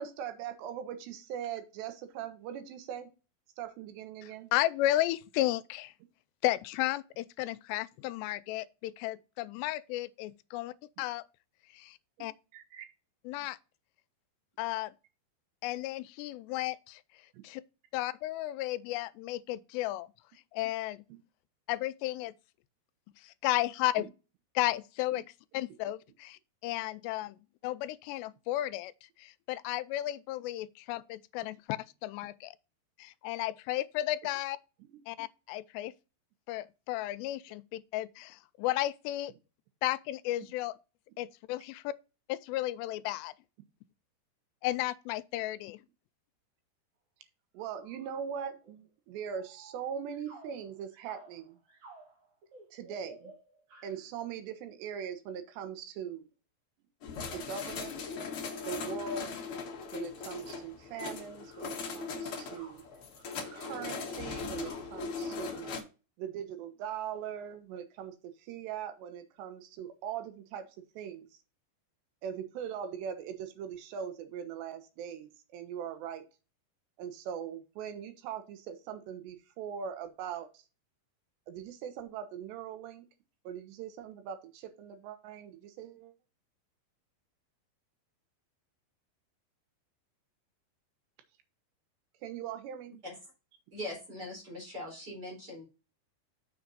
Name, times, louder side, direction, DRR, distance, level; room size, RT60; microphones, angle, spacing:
voice 1, 0.0-3.1 3.6-4.5 12.2-12.3 12.5-12.9 17.3-17.4 21.1-21.2 24.0-24.1 25.1-25.2 47.5-51.6 52.7-53.3 53.8-56.3 57.3-58.0 58.6-59.3 59.9-62.8 63.5-65.7 66.2-70.7 71.0-71.3 72.2-76.2 77.0-80.6 81.5-83.1 83.4-86.1 92.2-92.9, right 8 dB, 80° right, 3.2 m, -41 dB
voice 2, 4.5-5.9 6.4-11.2 11.7-12.3 13.3-13.6 14.6-14.9 15.6-17.0 17.4-17.6 17.9-20.1 20.5-21.0 21.7-22.3 23.2-24.1 24.6-25.2 25.5-27.4 27.6-28.9 29.2-32.6 33.0-34.6 35.1-35.9 36.5-39.3 39.8-40.7 41.2-41.9 42.3-43.3 44.6-45.8, left 15 dB, 85° left, 2.7 m, -33 dB
sound 1, 47.6-48.2 48.6-48.9 49.3-54.1 57.5-57.6 58.5-59.1 59.4-59.5 60.0-60.1 60.3-60.7 61.2-65.8, right 2 dB, 55° right, 3.7 m, -56 dB
sound 2, 57.0-65.8, left 5 dB, 65° left, 1.4 m, -39 dB
voice 3, 93.7-95.6, left 1 dB, 25° right, 4.4 m, -41 dB
6.8 x 6.8 x 4.0 m
omnidirectional pair, 4.9 m